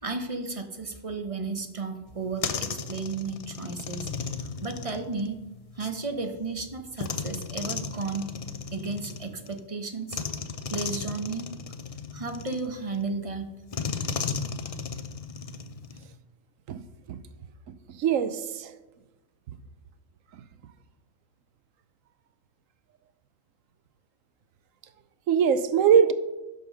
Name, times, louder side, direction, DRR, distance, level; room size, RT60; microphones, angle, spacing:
voice 1, 0.0-5.4 5.8-8.3 8.7-10.2 10.7-11.5 12.1-13.5, right 3 dB, 30° right, 0.9 m, -33 dB
sound 1, 2.1-6.0 7.0-9.6 10.1-13.0 13.7-16.1, left 5 dB, 45° left, 0.5 m, -35 dB
voice 2, 17.9-18.8 20.3-20.4 25.3-26.1, right 7 dB, 90° right, 1.1 m, -22 dB
11.0 x 5.4 x 6.5 m
omnidirectional pair, 1.3 m